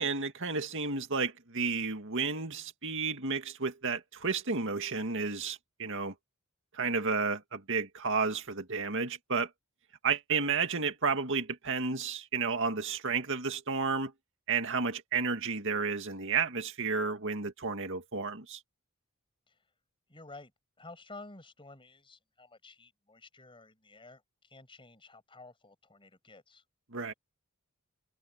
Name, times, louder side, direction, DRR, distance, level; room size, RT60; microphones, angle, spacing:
voice 1, 0.0-6.1 6.7-9.5 10.0-14.1 14.5-18.6 26.9-27.1, right 5 dB, 60° right, 2.1 m, -32 dB
voice 2, 20.1-20.5 20.8-26.6, left 3 dB, 25° left, 7.4 m, -52 dB
head